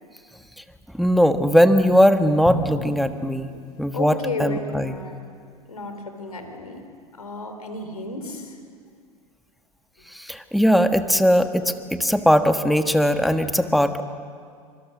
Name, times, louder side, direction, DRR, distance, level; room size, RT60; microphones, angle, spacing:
voice 1, 0.9-3.5 3.8-5.0 10.1-14.0, equal, ahead, 8 dB, 1.4 m, -19 dB
Drum, 2.5-4.5, left 2 dB, 25° left, 5.9 m, -34 dB
voice 2, 3.9-5.2 5.7-6.8 7.2-8.5 12.0-12.1, left 2 dB, 90° left, 6 dB, 3.8 m, -32 dB
28.0 x 25.5 x 6.3 m, 2.1 s
hypercardioid pair, 85°, 18 cm